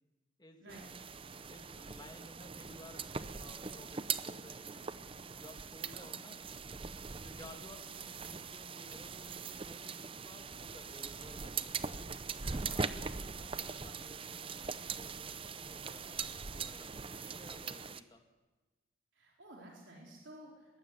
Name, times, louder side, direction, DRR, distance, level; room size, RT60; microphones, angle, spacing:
voice 1, 0.4-0.8 1.5-5.1 5.4-6.5 7.2-11.8 12.5-18.2, left 1 dB, 20° left, 4 dB, 2.1 m, -56 dB
sound 1, 0.7-18.0, right 5 dB, 30° right, 0.6 m, -41 dB
voice 2, 12.4-12.8 17.1-17.2 19.1-20.8, right 1 dB, 85° right, -2 dB, 4.3 m, -54 dB
20.5 x 15.5 x 9.8 m, 1.2 s
head